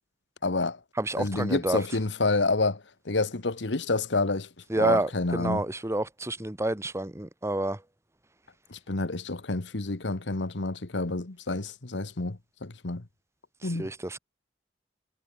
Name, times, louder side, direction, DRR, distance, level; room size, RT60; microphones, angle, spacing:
voice 1, 0.4-0.8 1.2-4.5 4.7-5.6 8.7-13.0 13.6-13.9, left 3 dB, 75° left, 1.3 m, -29 dB
voice 2, 1.0-1.8 4.7-7.8 13.8-14.2, right 1 dB, 15° right, 1.1 m, -29 dB
head